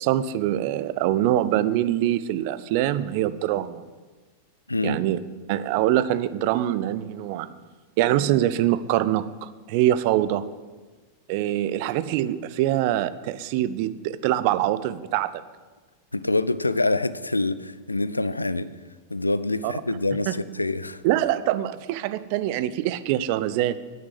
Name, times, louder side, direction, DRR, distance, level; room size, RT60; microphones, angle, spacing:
voice 1, 0.0-3.8 4.8-5.2 5.5-7.5 8.0-10.4 11.3-15.3 19.6-19.7 20.3-20.4 21.0-23.8, right 13 dB, 45° right, 0.6 m, -24 dB
voice 2, 4.7-5.0 16.1-18.7 19.1-21.0, left 2 dB, 85° left, 0.5 m, -25 dB
9.6 x 9.4 x 7.7 m
figure-of-eight pair, 90°, 0 cm